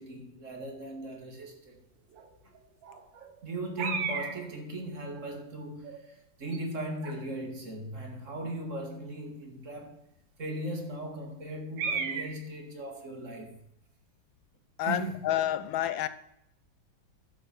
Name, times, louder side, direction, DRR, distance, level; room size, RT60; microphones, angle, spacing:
voice 1, 0.0-1.8 3.4-6.0 6.4-10.0 10.4-13.6 14.8-15.6, right 1 dB, 40° right, 2.2 m, -38 dB
sound 1, 2.1-2.3 2.6-2.7 2.8-3.5 3.8-4.5 5.2-5.3 5.8-6.1 6.5-6.6 7.0-7.2 8.3-8.4 11.8-12.4, right 5 dB, 75° right, 1.8 m, -35 dB
voice 2, 14.8-16.1, left 12 dB, 80° left, 1.5 m, -29 dB
11.5 x 8.1 x 6.0 m
omnidirectional pair, 2.1 m